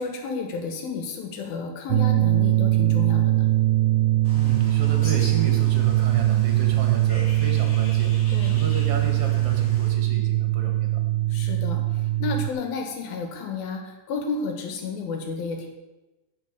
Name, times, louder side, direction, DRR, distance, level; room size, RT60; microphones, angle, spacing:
voice 1, 0.0-3.5 8.3-8.5 11.3-15.7, left 4 dB, 85° left, 4 dB, 3.3 m, -31 dB
sound 1, 1.9-12.5, right 15 dB, 85° right, 2.3 m, -21 dB
Bird, 4.2-9.9, equal, 30° left, 3.5 m, -41 dB
voice 2, 4.3-8.1 8.5-11.0, right 6 dB, 50° right, 3 dB, 2.2 m, -31 dB
10.0 x 6.2 x 8.0 m, 1.1 s
omnidirectional pair, 4.1 m